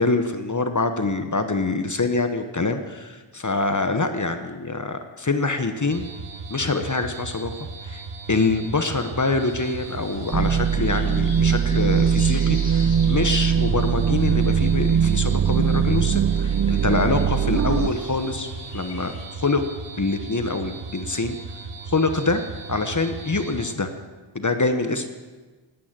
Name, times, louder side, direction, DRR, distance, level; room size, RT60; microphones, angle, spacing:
voice 1, 0.0-6.0 6.5-7.5 7.8-8.0 8.3-19.6 20.0-21.4 21.9-22.4 22.7-23.9 24.3-25.1, left 3 dB, 35° left, 8 dB, 1.1 m, -25 dB
sound 1, 5.9-23.8, right 3 dB, 60° right, 1.2 m, -37 dB
sound 2, 9.4-19.2, left 2 dB, 55° left, 4.5 m, -45 dB
sound 3, 10.3-17.9, right 7 dB, 40° right, 0.4 m, -21 dB
19.0 x 9.2 x 7.6 m, 1.3 s
wide cardioid pair, 85°, 49 cm